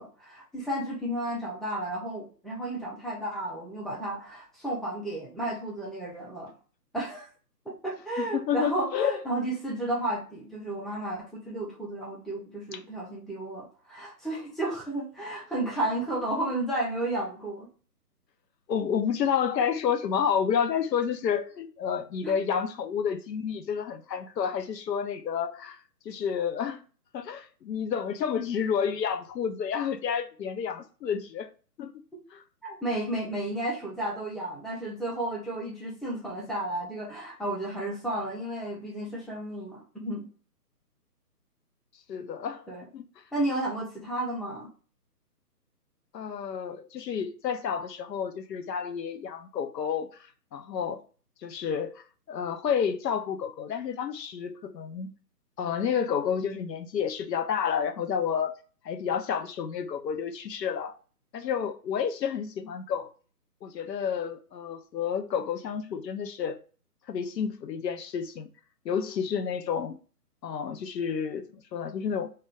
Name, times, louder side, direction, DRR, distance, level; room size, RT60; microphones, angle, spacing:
voice 1, 0.0-6.5 6.9-7.3 7.7-17.7 22.2-22.3 32.6-40.3 42.7-42.8 43.3-44.7, right 1 dB, ahead, 0.4 m, -32 dB
voice 2, 8.2-9.2 12.7-12.8 18.7-25.8 26.1-26.8 27.1-31.5 31.8-31.9 32.3-32.4 42.1-42.6 42.9-43.1 46.1-50.1 50.5-51.0 51.4-55.1 55.6-58.5 58.8-61.0 61.3-63.1 63.6-66.6 67.1-68.5 68.8-70.0 70.4-72.3, left 7 dB, 85° left, 0.6 m, -30 dB
2.2 x 2.1 x 3.4 m
hypercardioid pair, 170°, 48 cm